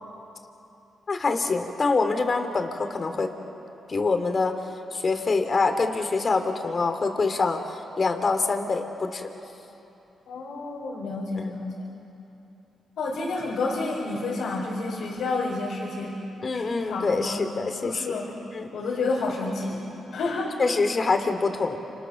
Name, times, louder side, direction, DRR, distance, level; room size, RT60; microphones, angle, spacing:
voice 1, 1.1-3.3 3.9-4.6 4.9-9.3 11.4-11.5 16.4-18.2 18.5-18.7 20.6-21.8, left 4 dB, 45° left, 6 dB, 3.0 m, -25 dB
voice 2, 10.3-11.9 13.0-16.2 16.5-17.4 17.8-18.3 18.7-19.8 20.1-20.5, left 3 dB, 80° left, -4 dB, 4.8 m, -30 dB
29.5 x 28.5 x 6.6 m, 3.0 s
cardioid pair, 65°, 0 cm